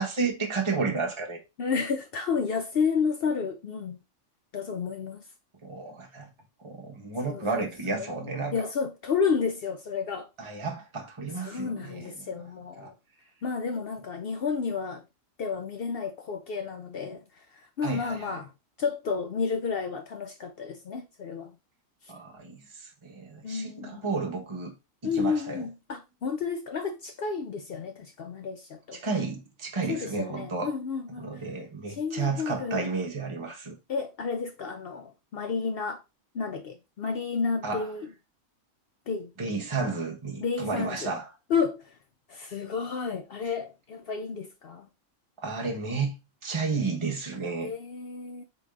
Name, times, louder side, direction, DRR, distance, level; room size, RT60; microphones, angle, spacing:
voice 1, 0.0-1.4 5.6-6.3 6.6-8.5 10.4-12.1 12.8-12.9 17.8-18.4 22.1-24.7 25.0-25.7 28.9-30.7 31.2-33.8 37.6-37.8 39.4-41.2 45.4-46.1 46.4-47.7, right 4 dB, 25° right, 1.0 m, -32 dB
voice 2, 1.6-4.0 4.5-5.3 7.3-8.1 8.5-10.3 11.4-12.9 13.4-15.0 15.4-18.5 18.8-21.6 22.0-22.1 23.4-24.1 25.0-29.0 29.9-31.5 31.9-32.9 33.9-36.0 36.3-38.1 39.1-39.3 40.4-41.1 41.5-42.0 42.3-44.9 47.6-48.4, left 5 dB, 60° left, 0.6 m, -31 dB
3.9 x 3.5 x 3.7 m
omnidirectional pair, 1.4 m